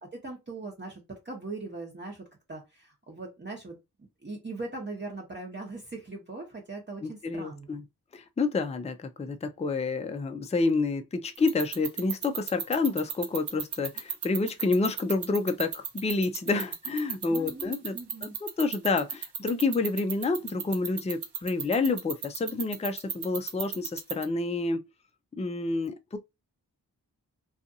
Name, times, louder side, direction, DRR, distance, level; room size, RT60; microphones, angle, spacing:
voice 1, 0.0-3.8 4.2-7.8 17.3-18.3, right 3 dB, 25° right, 0.9 m, -40 dB
voice 2, 7.0-7.8 8.1-18.0 18.2-24.8 25.4-26.2, left 3 dB, 15° left, 0.4 m, -29 dB
sound 1, 11.4-24.2, right 7 dB, 80° right, 0.7 m, -32 dB
2.5 x 2.4 x 2.6 m
cardioid pair, 50°, 39 cm